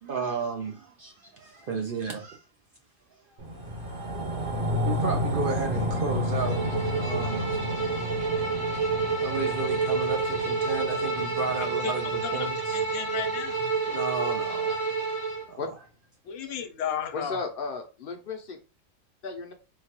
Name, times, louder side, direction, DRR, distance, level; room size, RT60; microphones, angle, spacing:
voice 1, 0.0-2.4 4.8-6.6 6.9-7.6 9.2-12.8 13.9-14.8 15.5-15.6 16.4-16.5, right 4 dB, 60° right, 0.6 m, -33 dB
sound 1, 3.4-14.0 14.4-14.5, left 1 dB, 45° right, 1.1 m, -32 dB
Bowed string instrument, 6.3-15.5, right 4 dB, 75° right, 1.4 m, -29 dB
voice 2, 11.6-11.9 12.2-12.5 12.7-13.7 16.2-17.4, left 9 dB, 80° left, 1.0 m, -34 dB
voice 3, 17.1-18.6 19.2-19.5, left 4 dB, 60° left, 0.6 m, -34 dB
3.8 x 2.2 x 2.8 m
omnidirectional pair, 1.3 m